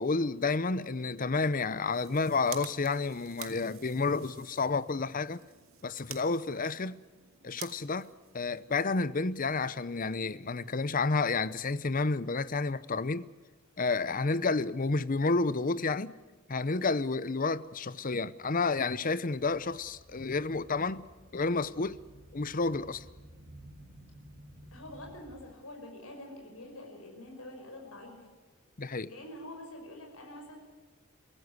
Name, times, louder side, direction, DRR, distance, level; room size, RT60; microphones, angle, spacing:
voice 1, 0.0-5.4 5.8-7.0 7.4-8.1 8.3-13.3 13.8-16.1 16.5-21.0 21.3-22.0 22.3-23.0 28.8-29.1, left 3 dB, 40° left, 0.7 m, -30 dB
sound 1, 1.7-9.0, right 11 dB, 70° right, 2.0 m, -50 dB
sound 2, 19.4-25.6 26.2-26.4 27.3-27.4 28.2-28.3, right 1 dB, 50° right, 2.9 m, -54 dB
voice 2, 24.7-28.3 29.1-30.6, left 1 dB, 85° left, 5.9 m, -46 dB
24.0 x 16.5 x 9.5 m
head